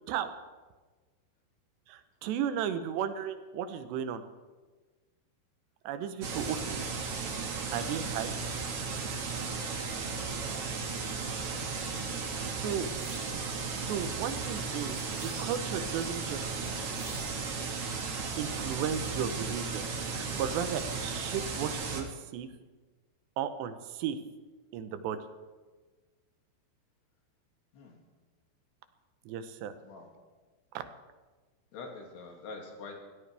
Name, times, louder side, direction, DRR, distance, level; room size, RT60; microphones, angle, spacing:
voice 1, 1.9-4.2 5.8-6.9 7.7-8.4 12.4-12.9 13.3-13.5 13.8-16.4 18.4-19.8 20.1-22.5 23.4-24.2 24.7-25.2 29.3-29.7 30.7-30.8, right 8 dB, 80° right, 10 dB, 3.1 m, -35 dB
sound 1, 6.2-22.0, right 4 dB, 50° right, 1.8 m, -35 dB
voice 2, 12.5-12.8 27.7-28.0 29.8-30.1 31.7-33.0, left 4 dB, 70° left, 0 dB, 4.4 m, -45 dB
sound 2, 13.0-13.4 14.9-15.7 16.9-17.5, right 2 dB, 30° right, 5.7 m, -49 dB
23.0 x 17.5 x 3.4 m, 1.3 s
omnidirectional pair, 5.0 m